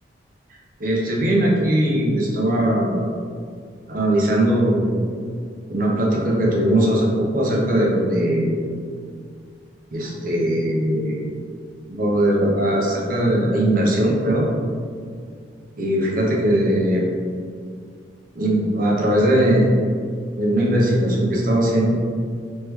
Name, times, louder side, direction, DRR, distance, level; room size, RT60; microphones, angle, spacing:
voice 1, 0.8-3.1 3.9-5.0 5.7-8.5 9.9-11.3 11.9-14.5 15.8-17.0 18.3-19.7 20.4-22.0, right 1 dB, 50° right, -2 dB, 0.7 m, -20 dB
3.5 x 3.2 x 3.0 m, 2.1 s
head